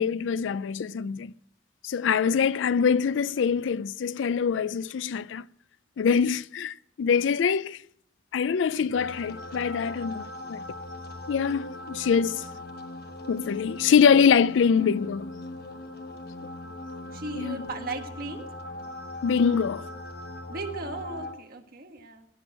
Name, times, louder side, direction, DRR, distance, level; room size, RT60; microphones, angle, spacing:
voice 1, 0.0-1.3 1.8-5.5 6.0-7.8 8.3-10.6 11.3-12.4 13.3-15.3 17.3-17.6 19.2-19.9, left 6 dB, 80° left, 0.4 m, -24 dB
sound 1, 8.9-21.3, left 1 dB, 55° left, 1.1 m, -39 dB
voice 2, 17.1-18.5 20.5-22.3, right 3 dB, 50° right, 1.4 m, -36 dB
16.5 x 6.2 x 7.6 m
head